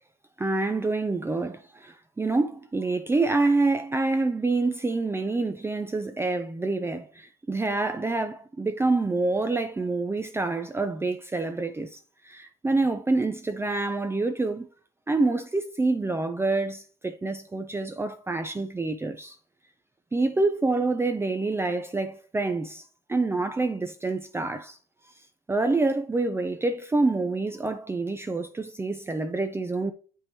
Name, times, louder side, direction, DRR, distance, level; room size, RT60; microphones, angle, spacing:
voice 1, 0.4-12.0 12.2-14.7 15.1-19.4 20.1-22.8 23.1-24.8 25.5-29.9, right 3 dB, 15° right, 0.6 m, -27 dB
8.0 x 5.6 x 2.9 m
cardioid pair, 110°, 17 cm